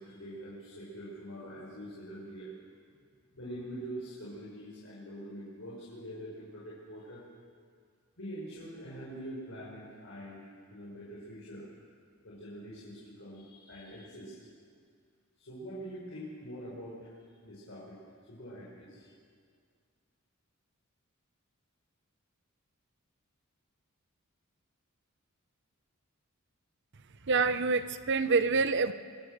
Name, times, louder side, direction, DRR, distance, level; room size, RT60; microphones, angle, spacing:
voice 1, 0.0-2.5 3.3-7.2 8.2-11.9 12.2-14.4 15.4-18.0 18.3-19.1, equal, 65° left, -6 dB, 5.6 m, -44 dB
voice 2, 27.3-28.9, right 4 dB, 60° right, 12 dB, 0.9 m, -26 dB
26.0 x 21.5 x 6.8 m, 2.1 s
head